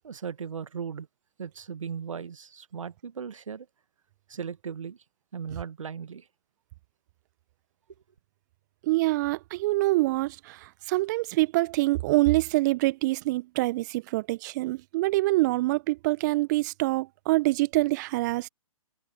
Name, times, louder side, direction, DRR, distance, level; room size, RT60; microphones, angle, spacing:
voice 1, 0.0-1.1 1.4-3.7 4.3-5.0 5.3-6.3, right 7 dB, 65° right, 1.5 m, -37 dB
voice 2, 8.8-18.5, right 20 dB, 35° right, 1.3 m, -25 dB
figure-of-eight pair, 130°, 18 cm